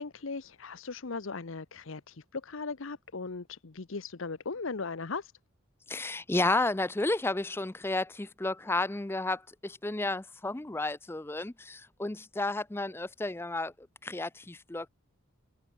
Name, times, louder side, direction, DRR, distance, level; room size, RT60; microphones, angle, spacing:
voice 1, 0.0-5.3, left 4 dB, 70° left, 0.8 m, -38 dB
voice 2, 5.9-13.7 14.0-14.9, left 2 dB, 10° left, 0.4 m, -32 dB
head